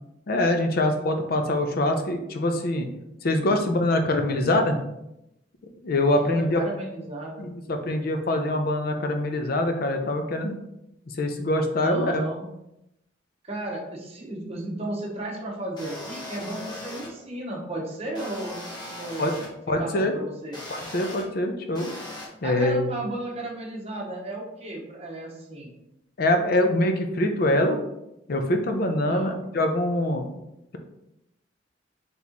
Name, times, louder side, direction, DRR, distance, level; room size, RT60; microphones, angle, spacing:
voice 1, 0.3-2.9 3.2-4.8 5.8-6.6 7.4-10.6 11.2-12.2 19.2-19.3 19.7-20.1 20.7-21.9 22.4-22.9 26.2-27.8 28.3-30.3, left 1 dB, 50° left, 5 dB, 0.5 m, -24 dB
voice 2, 6.0-7.5 11.8-12.5 13.5-19.4 19.8-20.6 22.4-25.7 29.1-29.4, right 1 dB, 35° right, -1 dB, 0.9 m, -34 dB
sound 1, 15.8-17.1 18.1-19.5 20.5-21.2 21.7-22.3, left 1 dB, 25° left, 0.9 m, -38 dB
4.1 x 3.5 x 2.9 m, 0.86 s
head